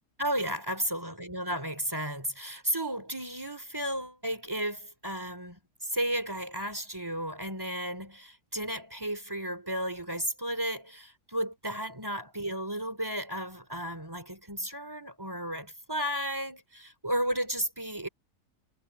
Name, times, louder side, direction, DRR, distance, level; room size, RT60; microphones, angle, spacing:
voice 1, 0.2-18.1, right 1 dB, 15° right, 3.4 m, -33 dB
omnidirectional pair, 1.7 m